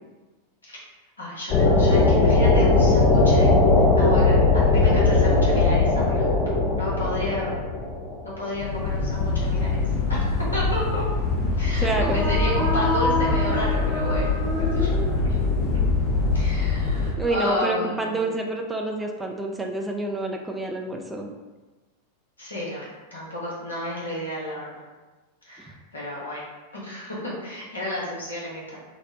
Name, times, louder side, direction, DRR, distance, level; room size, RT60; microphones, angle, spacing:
voice 1, 1.2-7.6 8.2-9.8 10.1-11.0 11.6-15.0 15.2-15.4 15.7-15.8 16.3-18.3 22.4-24.7 25.4-26.4 26.7-28.8, left 1 dB, 75° left, -6 dB, 0.9 m, -32 dB
sound 1, 1.5-17.1, left 3 dB, 35° left, 0.6 m, -21 dB
sound 2, 11.8-15.7, left 2 dB, 15° left, 0.9 m, -28 dB
voice 2, 11.8-12.4 17.2-21.3, right 2 dB, 10° right, 1 dB, 0.4 m, -27 dB
4.0 x 2.0 x 2.6 m, 1.2 s
figure-of-eight pair, 90°, 0 cm